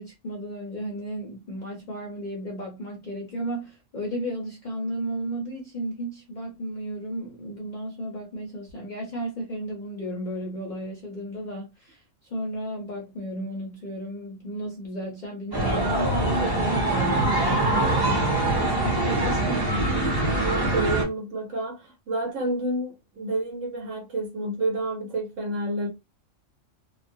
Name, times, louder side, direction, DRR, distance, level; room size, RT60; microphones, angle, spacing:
voice 1, 0.0-20.1, equal, 45° left, 0.6 m, -34 dB
sound 1, 15.5-21.0, right 2 dB, 20° right, 0.8 m, -23 dB
voice 2, 20.4-25.9, right 1 dB, 75° right, 1.0 m, -29 dB
2.3 x 2.1 x 2.5 m
omnidirectional pair, 1.3 m